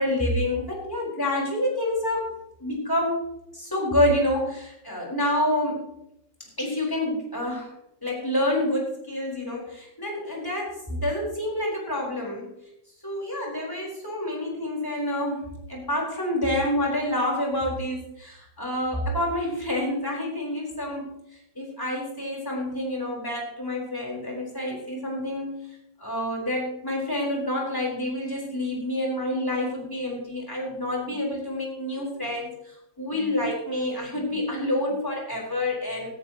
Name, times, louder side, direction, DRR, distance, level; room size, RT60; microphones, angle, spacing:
voice 1, 0.0-3.2 3.5-5.9 6.6-7.7 8.0-12.5 13.0-21.1 21.5-25.5 26.0-36.2, left 1 dB, 10° left, -3 dB, 4.8 m, -28 dB
17.5 x 14.5 x 3.1 m, 0.80 s
omnidirectional pair, 2.0 m